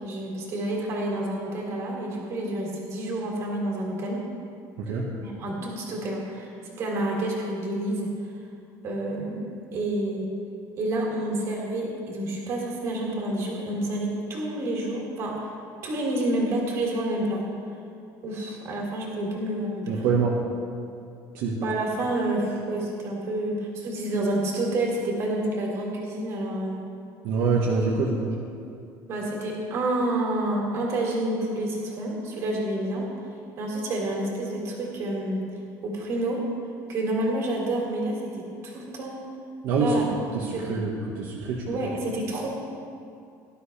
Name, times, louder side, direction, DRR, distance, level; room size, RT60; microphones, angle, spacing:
voice 1, 0.0-4.3 5.2-8.1 8.8-9.4 9.7-10.3 10.8-15.5 15.8-17.4 18.2-20.0 21.6-26.8 29.1-33.1 33.6-35.4 35.8-36.4 36.9-39.2 39.8-40.8 41.7-42.5, right 1 dB, 40° right, -2 dB, 3.0 m, -29 dB
voice 2, 4.8-5.2 19.9-20.3 21.3-21.5 27.2-28.3 39.6-40.0 40.3-41.7, right 4 dB, 65° right, -4 dB, 1.6 m, -25 dB
18.5 x 12.5 x 3.4 m, 2.5 s
cardioid pair, 180°, 7 cm